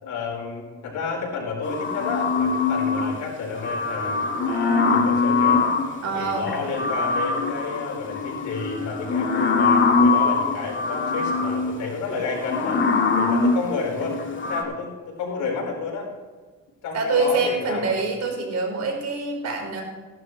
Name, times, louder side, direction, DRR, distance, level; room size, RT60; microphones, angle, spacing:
voice 1, 0.0-5.7 6.1-12.8 13.1-16.1 16.8-18.0, left 4 dB, 80° left, -1 dB, 4.7 m, -31 dB
sound 1, 1.6-3.2 3.5-6.0 6.5-14.6, left 4 dB, 40° left, 2.0 m, -23 dB
voice 2, 6.0-6.5 16.9-19.8, right 3 dB, 60° right, 1 dB, 4.3 m, -25 dB
17.0 x 11.5 x 3.2 m, 1.4 s
cardioid pair, 90°, 30 cm